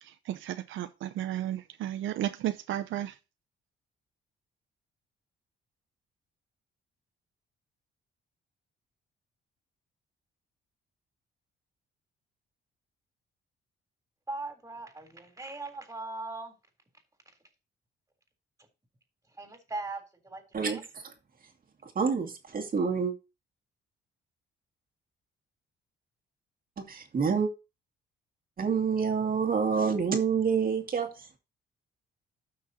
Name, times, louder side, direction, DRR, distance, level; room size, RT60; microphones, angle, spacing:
voice 1, 0.0-3.1, right 12 dB, 80° right, 0.8 m, -33 dB
voice 2, 14.3-16.5 19.3-20.9, right 2 dB, 15° right, 3.7 m, -39 dB
voice 3, 20.5-21.0 22.0-23.1 26.8-27.5 28.6-31.4, right 6 dB, 45° right, 2.3 m, -28 dB
13.0 x 6.2 x 2.9 m
cardioid pair, 90°, 20 cm